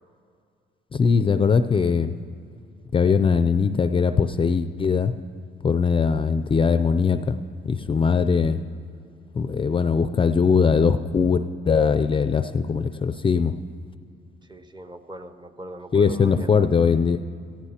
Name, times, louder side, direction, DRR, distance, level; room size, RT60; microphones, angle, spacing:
voice 1, 0.9-2.2 2.9-5.1 5.6-7.4 7.6-8.6 9.3-13.5 15.9-17.2, left 5 dB, 25° left, 11 dB, 0.4 m, -21 dB
voice 2, 14.4-16.5, right 1 dB, 20° right, 9 dB, 0.7 m, -39 dB
16.5 x 14.5 x 2.8 m, 2.3 s
cardioid pair, 90°, 20 cm